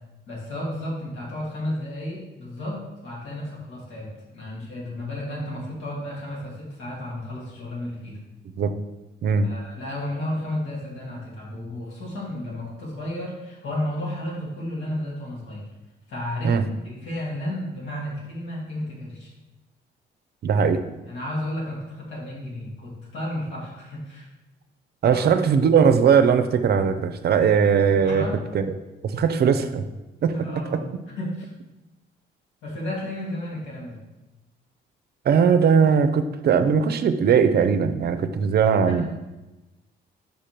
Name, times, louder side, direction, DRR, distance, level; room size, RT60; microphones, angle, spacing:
voice 1, 0.3-8.2 9.4-15.6 16.1-16.6 16.8-19.3 21.1-24.3 25.1-25.2 28.0-28.4 30.3-31.5 32.6-34.0 38.9-39.1, left 1 dB, 90° left, -5 dB, 2.3 m, -32 dB
voice 2, 20.4-20.8 25.0-28.3 28.5-28.7 29.0-29.8 30.2-30.8 35.3-39.0, right 6 dB, 55° right, 10 dB, 0.5 m, -19 dB
5.4 x 5.0 x 4.4 m, 1.0 s
cardioid pair, 90°, 20 cm